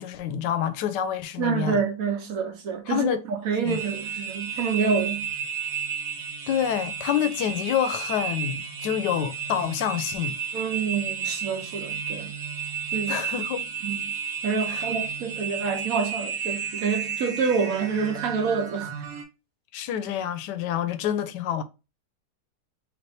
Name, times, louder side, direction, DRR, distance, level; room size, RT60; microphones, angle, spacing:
voice 1, 0.0-1.8 2.9-3.2 3.6-3.8 6.5-10.4 13.1-13.7 14.7-14.9 19.7-21.6, left 9 dB, 85° left, 1.2 m, -27 dB
voice 2, 1.4-5.3 10.5-12.3 12.9-13.2 13.8-14.1 14.4-18.9, right 5 dB, 65° right, 1.0 m, -27 dB
sound 1, 3.7-19.2, right 7 dB, 85° right, 1.5 m, -32 dB
3.4 x 2.8 x 3.9 m
omnidirectional pair, 1.8 m